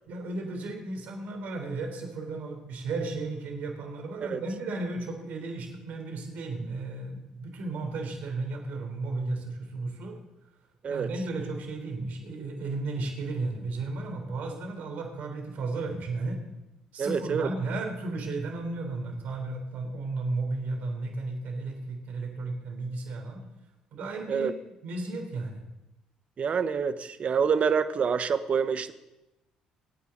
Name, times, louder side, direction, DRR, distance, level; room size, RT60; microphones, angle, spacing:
voice 1, 0.1-10.2 10.9-16.4 16.9-23.4 23.9-24.5 24.8-25.6, right 3 dB, 65° right, 3 dB, 3.6 m, -34 dB
voice 2, 17.0-17.5 24.3-24.5 26.4-28.9, right 6 dB, 50° right, 12 dB, 1.0 m, -27 dB
25.5 x 9.5 x 4.0 m, 0.97 s
hypercardioid pair, 60°, 3 cm